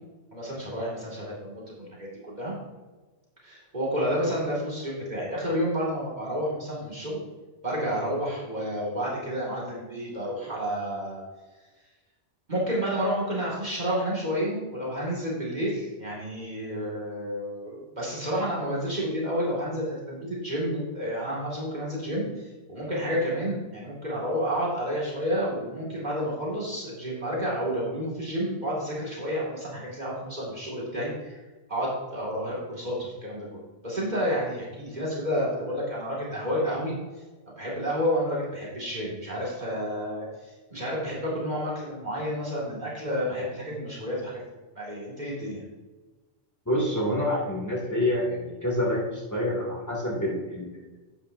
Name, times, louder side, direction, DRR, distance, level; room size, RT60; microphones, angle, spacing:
voice 1, 0.3-2.6 3.4-7.2 7.6-11.2 12.5-31.4 31.7-36.9 37.5-44.4 44.7-45.6, equal, 40° right, -5 dB, 2.7 m, -30 dB
voice 2, 46.7-50.8, left 1 dB, 15° left, -5 dB, 2.7 m, -27 dB
11.5 x 9.2 x 2.8 m, 1.2 s
omnidirectional pair, 1.2 m